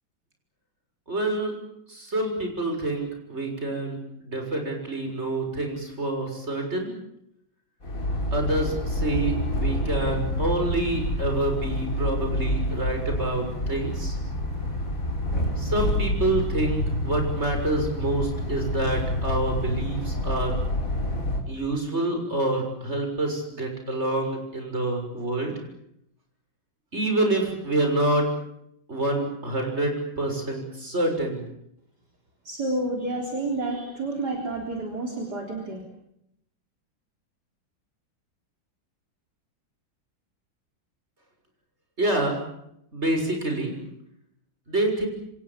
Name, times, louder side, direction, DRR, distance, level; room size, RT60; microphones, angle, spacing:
voice 1, 1.1-1.5 1.9-6.9 8.3-14.2 15.6-20.6 21.5-25.6 26.9-28.2 28.9-31.4 42.0-42.3 42.9-43.7 44.7-45.1, right 2 dB, 30° right, 3 dB, 6.8 m, -27 dB
sound 1, 7.8-21.4, left 1 dB, 40° left, 5.2 m, -28 dB
voice 2, 32.4-35.8, right 2 dB, 50° right, 1 dB, 4.4 m, -29 dB
28.0 x 26.0 x 7.4 m, 0.78 s
omnidirectional pair, 2.2 m